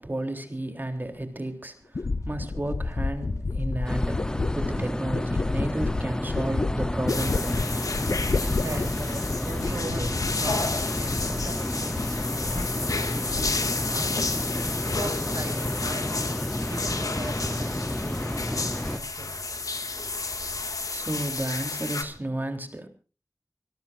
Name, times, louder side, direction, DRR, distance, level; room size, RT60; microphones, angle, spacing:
voice 1, 0.0-7.7 20.2-22.9, right 1 dB, 30° right, 6 dB, 3.6 m, -33 dB
sound 1, 1.2-1.3 1.9-11.6 11.9-12.8 13.1-13.9 14.2-14.7, left 3 dB, 60° left, 0.8 m, -31 dB
sound 2, 3.8-19.0, left 1 dB, 10° left, 0.9 m, -31 dB
sound 3, 7.1-22.0, left 3 dB, 80° left, 2.1 m, -32 dB
voice 2, 8.6-12.2 12.5-13.2 13.5-14.3 14.9-16.3 16.7-19.9, right 2 dB, 75° right, 3 dB, 6.3 m, -40 dB
26.0 x 18.0 x 2.6 m, 0.36 s
wide cardioid pair, 70°, 6 cm